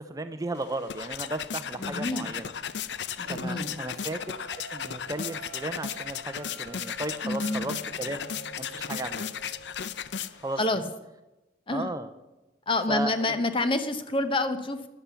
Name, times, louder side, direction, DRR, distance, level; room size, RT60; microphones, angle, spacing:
voice 1, 0.0-2.5 3.3-4.2 4.5-8.2 8.6-9.2 10.4-10.6 11.7-12.1 12.9-13.4, right 2 dB, 20° right, 10 dB, 0.6 m, -35 dB
sound 1, 0.6-10.6, left 8 dB, 75° left, 0.6 m, -36 dB
voice 2, 1.8-2.3 3.2-3.8 7.2-7.8 10.6-10.8 11.7-11.9 12.7-14.9, left 2 dB, 30° left, 9 dB, 0.9 m, -28 dB
sound 2, 3.2-10.6, right 3 dB, 85° right, 0.9 m, -47 dB
12.0 x 10.0 x 6.9 m, 1.0 s
head